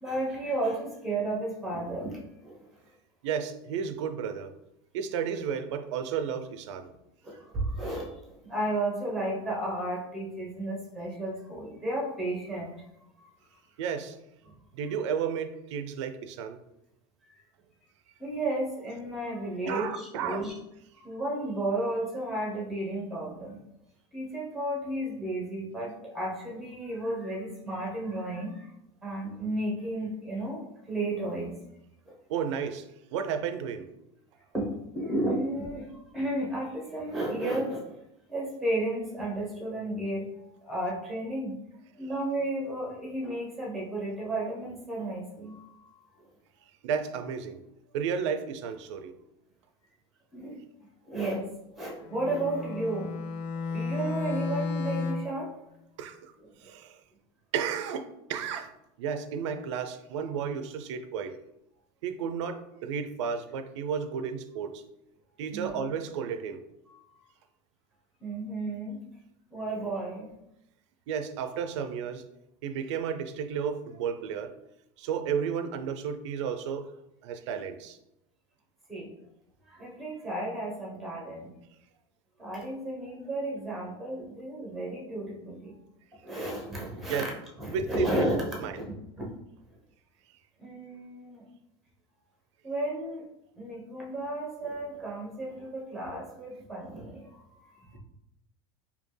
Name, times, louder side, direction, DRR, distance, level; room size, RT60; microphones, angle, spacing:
voice 1, 0.0-2.8 7.2-12.8 13.2-13.3 17.3-17.4 18.2-20.5 21.0-23.6 24.1-28.7 29.0-31.6 32.1-32.2 34.5-38.0 38.3-41.6 42.0-46.3 50.3-50.6 51.0-51.5 51.7-53.3 53.6-55.5 65.5-65.7 66.9-67.3 68.2-69.0 69.5-70.3 78.9-79.1 79.7-81.5 82.4-85.8 86.2-87.3 87.6-88.8 89.2-89.3 90.6-91.5 92.6-93.3 93.6-98.0, right 1 dB, ahead, -3 dB, 1.0 m, -33 dB
voice 2, 3.2-4.5 4.9-6.9 13.8-14.2 14.7-16.6 19.7-20.4 32.3-32.8 33.1-33.9 46.8-47.6 47.9-49.1 56.0-56.3 56.6-57.0 57.5-58.7 59.0-61.4 62.0-64.8 65.4-66.6 71.1-72.2 72.6-74.5 75.0-76.9 77.2-78.0 87.1-87.2 87.7-88.2 88.6-88.7, right 7 dB, 85° right, 8 dB, 0.4 m, -32 dB
Bowed string instrument, 52.0-55.4, left 3 dB, 85° left, 0.6 m, -33 dB
4.2 x 2.8 x 3.2 m, 0.86 s
supercardioid pair, 165°, 15 cm